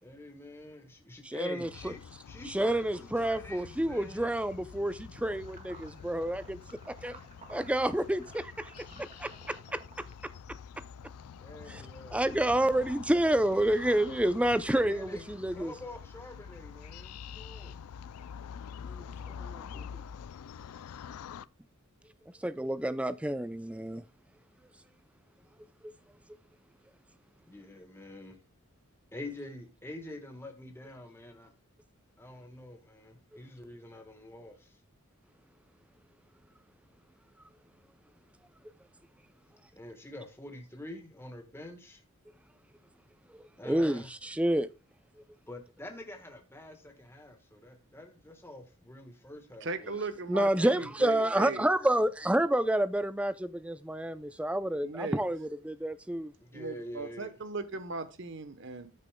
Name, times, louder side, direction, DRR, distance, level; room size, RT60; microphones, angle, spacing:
voice 1, 0.0-2.0 2.3-4.3 11.4-12.8 14.8-15.2 15.5-17.8 18.7-20.0 27.5-28.4 29.1-31.5 32.2-34.8 39.7-42.0 43.6-44.1 45.5-50.0 50.6-50.7 56.4-57.3, left 1 dB, 10° left, 1.3 m, -46 dB
voice 2, 1.2-1.9 2.5-6.6 7.0-7.2 7.5-8.8 9.2-10.3 11.7-11.8 12.1-15.7 22.4-24.0 43.3-44.7 50.3-56.3, right 1 dB, 5° right, 0.4 m, -29 dB
sound 1, 1.6-21.5, left 7 dB, 85° left, 0.4 m, -46 dB
sound 2, 5.2-10.4, right 3 dB, 30° right, 1.8 m, -54 dB
voice 3, 49.6-51.6 54.8-55.2 56.5-58.9, right 3 dB, 55° right, 0.9 m, -38 dB
13.5 x 6.8 x 2.2 m
head